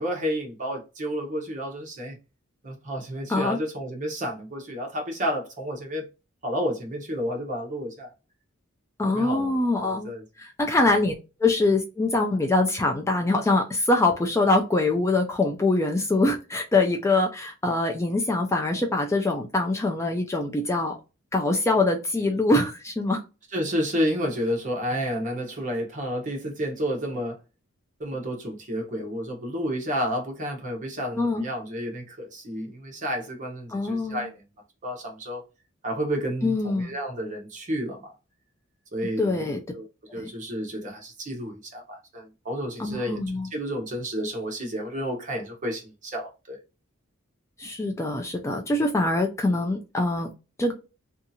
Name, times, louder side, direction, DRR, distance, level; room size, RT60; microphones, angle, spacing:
voice 1, 0.0-2.2 2.6-6.1 6.4-8.1 9.1-9.5 9.8-10.2 23.5-27.4 28.0-34.4 34.8-35.4 35.8-38.1 38.9-39.5 39.7-39.9 40.1-43.2 43.5-46.6, equal, 40° right, 0.9 m, -31 dB
voice 2, 9.0-10.1 10.4-11.1 11.4-21.0 21.3-23.2 31.2-31.5 33.7-34.3 36.4-36.9 39.2-39.6 40.1-40.3 42.8-43.5 47.6-50.3 50.6-50.7, left 2 dB, 15° left, 0.3 m, -24 dB
2.7 x 2.4 x 2.6 m
head